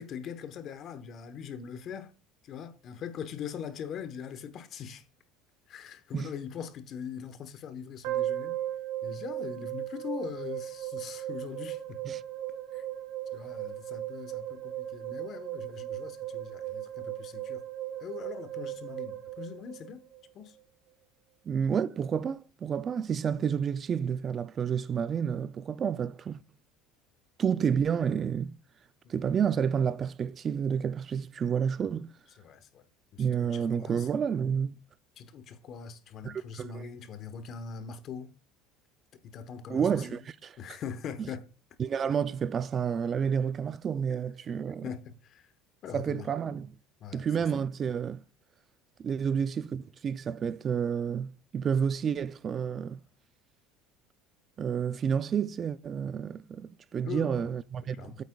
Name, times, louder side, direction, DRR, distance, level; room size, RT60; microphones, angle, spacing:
voice 1, 0.0-2.1 2.4-5.1 5.7-8.6 9.0-12.2 12.7-12.8 13.3-17.6 18.0-20.0 20.3-20.6 29.0-29.1 32.4-32.8 33.1-34.1 35.2-38.3 39.2-40.2 40.6-41.5 44.8-45.5 45.8-46.3 47.0-47.5 57.0-57.5 57.8-58.2, left 7 dB, 45° left, 0.9 m, -42 dB
sound 1, 8.0-20.3, right 12 dB, 75° right, 2.4 m, -37 dB
voice 2, 21.5-26.4 27.4-28.5 29.1-32.1 33.2-34.7 36.2-36.9 39.7-40.6 41.2-41.3 41.8-44.9 45.9-46.8 47.1-48.2 49.0-53.0 54.6-58.2, right 7 dB, 30° right, 0.3 m, -30 dB
8.2 x 8.1 x 2.3 m
cardioid pair, 135°, 0 cm